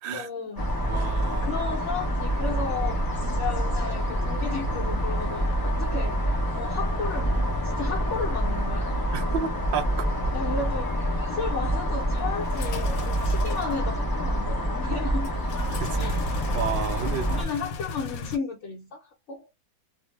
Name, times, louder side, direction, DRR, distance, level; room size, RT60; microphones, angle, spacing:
voice 1, 0.1-0.8 1.4-3.1 3.4-9.5 10.3-11.0 11.3-15.3 16.0-16.3 16.7-16.8 17.3-19.5, left 5 dB, 60° left, 0.9 m, -34 dB
sound 1, 0.6-17.4, equal, 30° left, 0.4 m, -27 dB
voice 2, 0.8-1.5 9.1-9.9 15.7-16.0 16.5-17.3, right 7 dB, 85° right, 0.5 m, -31 dB
sound 2, 12.4-13.8 15.2-18.4, left 4 dB, 85° left, 1.1 m, -36 dB
2.6 x 2.0 x 3.1 m
omnidirectional pair, 1.5 m